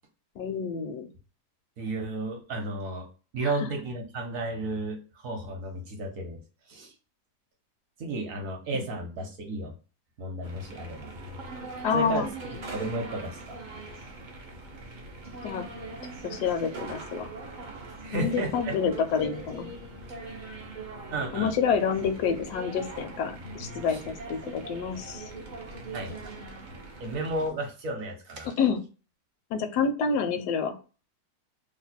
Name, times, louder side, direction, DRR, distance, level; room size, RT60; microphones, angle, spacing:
voice 1, 0.4-1.1 3.4-3.5 11.8-12.3 15.4-15.6 16.2-17.3 18.1-19.7 21.3-25.3 28.6-28.8 29.5-30.7, left 6 dB, 80° left, 7 dB, 1.1 m, -28 dB
voice 2, 1.8-3.1 3.3-6.4 6.7-6.9 8.0-9.7 10.2-11.1 11.9-13.6 18.0-18.7 21.1-21.5 23.9-24.0 25.9-26.4 27.0-28.5, right 2 dB, 60° right, 2 dB, 1.0 m, -33 dB
sound 1, 10.4-27.5, right 2 dB, 80° right, 0.4 m, -41 dB
2.9 x 2.1 x 4.0 m, 0.34 s
omnidirectional pair, 1.8 m